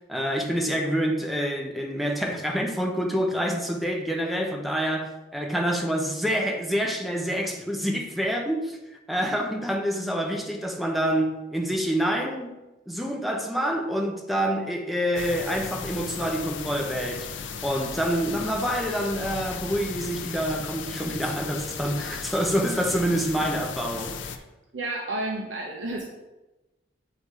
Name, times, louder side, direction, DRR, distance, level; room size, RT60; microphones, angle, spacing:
voice 1, 0.1-8.8 9.1-12.6 12.9-24.4, equal, ahead, 0.6 m, -27 dB
sound 1, 15.2-24.4, left 6 dB, 75° left, 0.5 m, -36 dB
voice 2, 24.7-26.0, right 2 dB, 75° right, 0.8 m, -31 dB
8.2 x 2.7 x 4.7 m
head